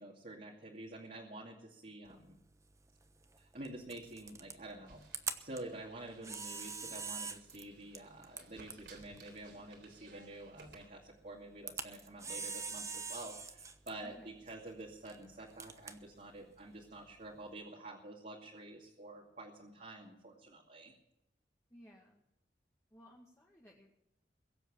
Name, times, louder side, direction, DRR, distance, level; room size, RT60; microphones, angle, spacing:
voice 1, 0.0-2.3 3.4-5.0 5.4-20.9, right 2 dB, 45° right, -2 dB, 2.5 m, -49 dB
Camera, 2.1-17.5, right 4 dB, 15° right, 1.1 m, -47 dB
sound 1, 4.9-10.9, right 3 dB, 75° right, 3.7 m, -60 dB
voice 2, 14.0-14.5 21.7-22.2 22.9-23.9, equal, 15° left, -2 dB, 1.9 m, -58 dB
22.0 x 7.9 x 7.3 m, 0.89 s
head